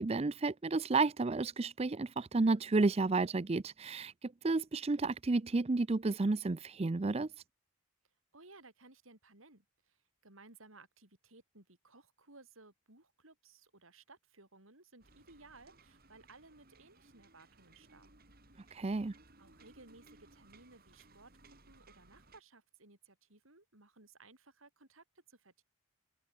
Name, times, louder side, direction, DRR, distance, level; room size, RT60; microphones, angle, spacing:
voice 1, 0.0-7.3 18.7-19.1, right 3 dB, 30° right, 0.5 m, -31 dB
voice 2, 8.3-18.1 19.4-25.6, right 3 dB, 85° right, 5.9 m, -60 dB
sound 1, 15.0-22.4, right 2 dB, 45° right, 6.0 m, -62 dB
head